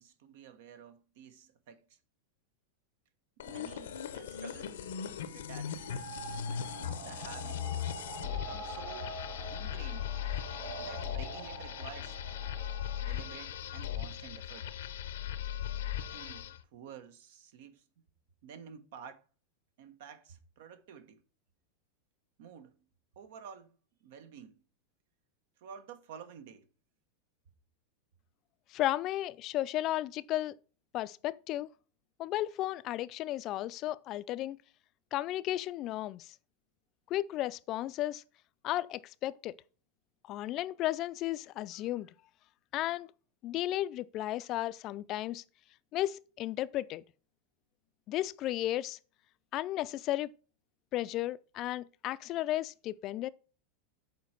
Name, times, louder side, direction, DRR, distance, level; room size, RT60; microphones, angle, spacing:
voice 1, 0.0-2.0 3.4-4.8 5.2-6.1 7.0-7.6 8.2-9.2 9.5-10.1 10.8-12.2 13.0-14.7 16.1-17.8 18.4-19.2 19.8-21.2 22.4-22.8 23.1-23.7 24.0-24.6 25.6-26.7, right 7 dB, 70° right, 1.2 m, -50 dB
sound 1, 3.4-16.6, left 10 dB, 85° left, 0.8 m, -38 dB
sound 2, 5.7-13.4, right 3 dB, 40° right, 3.1 m, -45 dB
voice 2, 28.7-30.6 30.9-31.7 32.2-34.6 35.1-36.3 37.1-38.2 38.6-39.5 40.3-42.1 42.7-43.1 43.4-45.4 45.9-47.0 48.1-49.0 49.5-50.3 50.9-53.3, left 14 dB, 40° left, 0.4 m, -34 dB
7.3 x 4.6 x 5.8 m
supercardioid pair, 130°, 0 cm